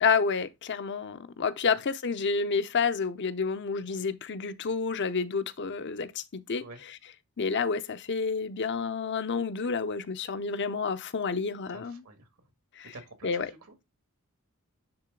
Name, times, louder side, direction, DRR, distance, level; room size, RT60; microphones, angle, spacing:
voice 1, 0.0-6.7 7.4-12.0 12.8-12.9 13.2-13.5, left 5 dB, 50° left, 0.6 m, -29 dB
voice 2, 11.7-12.3 12.9-13.9, right 2 dB, 75° right, 1.9 m, -49 dB
9.8 x 3.6 x 3.8 m
head